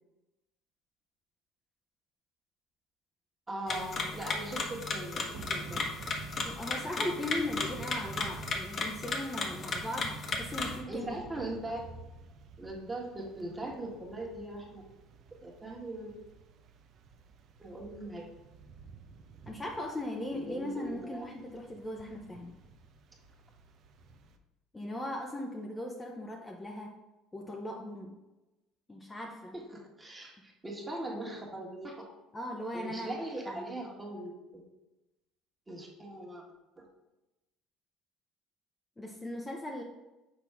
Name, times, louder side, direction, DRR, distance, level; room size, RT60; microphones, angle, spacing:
voice 1, 3.5-5.8 10.9-11.8 12.6-14.8 15.4-16.1 17.6-18.2 20.3-21.2 29.5-30.3 30.6-31.9 32.7-34.3 35.7-36.4 36.8-36.9, right 1 dB, 20° right, -1 dB, 1.6 m, -40 dB
sound 1, 3.7-10.8, left 3 dB, 45° left, 1.0 m, -35 dB
Thunder / Rain, 5.3-24.4, right 5 dB, 55° right, 0.6 m, -51 dB
voice 2, 6.4-11.5 19.5-22.5 24.7-26.9 27.3-28.1 28.9-29.5 32.3-33.2 33.5-33.7 39.0-39.8, left 1 dB, 15° left, 0 dB, 0.7 m, -38 dB
6.0 x 4.5 x 3.5 m, 1.0 s
supercardioid pair, 95°, 0 cm